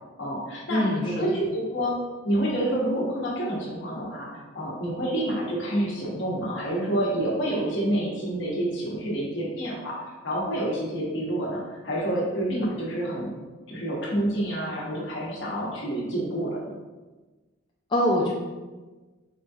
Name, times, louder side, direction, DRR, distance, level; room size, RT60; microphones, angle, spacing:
voice 1, 0.2-2.0 2.2-10.0 10.2-13.3 13.7-16.6, right 1 dB, 60° left, -5 dB, 1.0 m, -28 dB
voice 2, 0.7-1.1 17.9-18.3, left 1 dB, 25° left, -4 dB, 0.3 m, -23 dB
4.5 x 2.6 x 2.3 m, 1.2 s
head